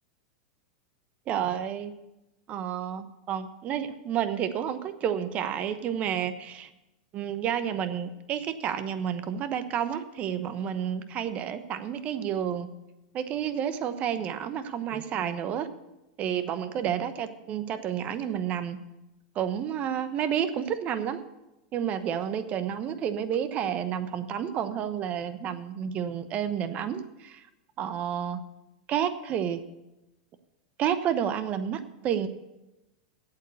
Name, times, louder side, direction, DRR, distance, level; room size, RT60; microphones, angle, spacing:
voice 1, 1.3-1.9 2.5-6.7 7.1-12.7 13.1-15.7 16.2-18.8 19.4-21.2 21.7-27.4 27.8-28.4 28.9-29.6 30.8-32.3, right 9 dB, 40° right, 11 dB, 1.0 m, -30 dB
8.4 x 8.2 x 8.2 m, 0.97 s
hypercardioid pair, 120°, 4 cm